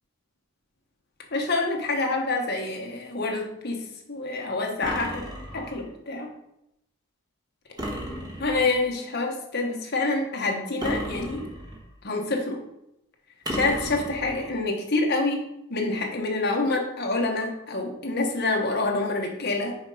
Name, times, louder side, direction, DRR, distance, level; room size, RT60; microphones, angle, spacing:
voice 1, 1.3-5.3 5.5-6.3 8.4-11.4 12.0-12.6 13.5-15.4 15.7-19.8, left 2 dB, 45° left, 1 dB, 1.2 m, -27 dB
sound 1, 4.8-5.9 7.8-8.8 10.8-11.9 13.4-14.5, equal, 20° right, 1.2 m, -34 dB
6.3 x 5.1 x 4.9 m, 0.83 s
head